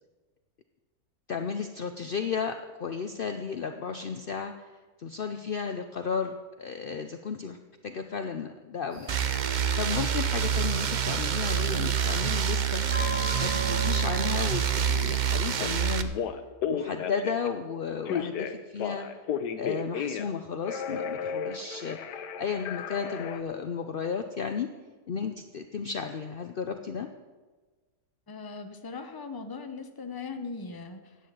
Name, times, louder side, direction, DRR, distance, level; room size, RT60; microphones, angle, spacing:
voice 1, 1.3-4.7 5.0-7.6 7.8-9.1 9.8-12.8 13.4-16.1 16.7-19.1 19.6-24.7 25.1-27.1, left 6 dB, 65° left, 7 dB, 0.5 m, -33 dB
sound 1, 8.9-14.3, right 1 dB, 30° right, 3.4 m, -39 dB
sound 2, 9.1-16.0, right 8 dB, 85° right, 0.4 m, -27 dB
Telephone, 15.6-15.7 16.1-17.5 18.1-20.4 20.6-23.4, left 7 dB, 90° left, 1.4 m, -33 dB
voice 2, 28.3-31.2, left 4 dB, 20° left, 7 dB, 0.6 m, -39 dB
11.0 x 8.5 x 8.0 m, 1.3 s
omnidirectional pair, 1.7 m